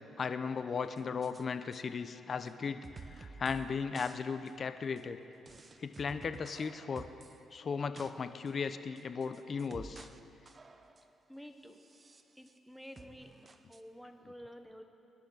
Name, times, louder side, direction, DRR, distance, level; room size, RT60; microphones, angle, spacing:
voice 1, 0.2-2.8 3.1-5.2 5.8-7.0 7.5-10.1, left 5 dB, 45° left, 10 dB, 0.7 m, -36 dB
sound 1, 1.0-1.4 1.7-1.8 2.5-2.6 2.8-3.7 3.9-4.2 4.5-4.6 5.0-5.1 5.5-7.4 7.7-8.1 8.5-8.6 9.0-10.2 10.5-11.1 11.7-12.6 13.0-13.8, right 3 dB, 30° right, 0.7 m, -52 dB
voice 2, 11.3-11.8 12.4-13.3 13.7-14.8, equal, ahead, 5 dB, 1.1 m, -50 dB
23.0 x 11.5 x 4.0 m, 3.0 s
cardioid pair, 90°, 0 cm